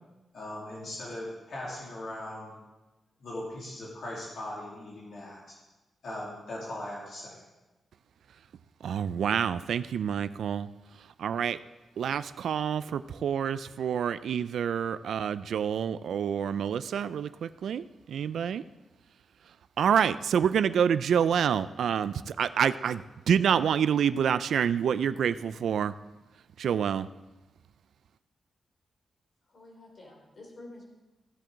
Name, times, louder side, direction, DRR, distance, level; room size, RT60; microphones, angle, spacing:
voice 1, 0.3-2.6 3.2-5.6 6.0-7.4, left 1 dB, 60° left, -5 dB, 2.6 m, -39 dB
voice 2, 8.8-10.7 11.2-11.6 12.0-18.6 19.8-25.9 26.6-27.1, right 8 dB, 80° right, 14 dB, 0.3 m, -27 dB
voice 3, 29.4-30.9, left 2 dB, 40° left, -1 dB, 3.6 m, -49 dB
15.5 x 7.5 x 3.9 m, 1.1 s
wide cardioid pair, 145°, 0 cm